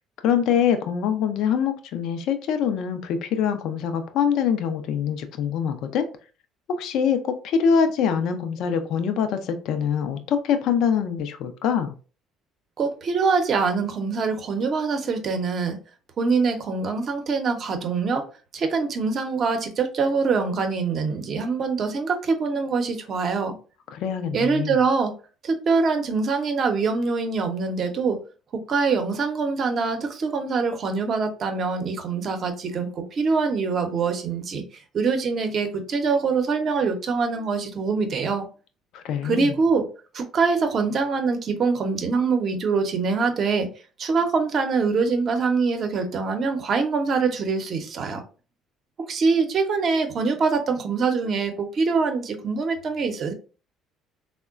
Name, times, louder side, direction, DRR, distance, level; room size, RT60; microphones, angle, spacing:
voice 1, 0.2-6.0 6.7-11.9 23.9-24.8 38.9-39.5, left 7 dB, 70° left, 8 dB, 0.4 m, -24 dB
voice 2, 12.8-15.8 16.2-18.2 18.5-23.6 24.3-25.1 25.4-28.2 28.5-34.6 34.9-38.5 39.2-39.8 40.1-43.7 44.0-48.2 49.1-53.3, right 4 dB, 50° right, 6 dB, 0.7 m, -24 dB
3.5 x 2.1 x 2.3 m, 0.36 s
supercardioid pair, 70°, 0 cm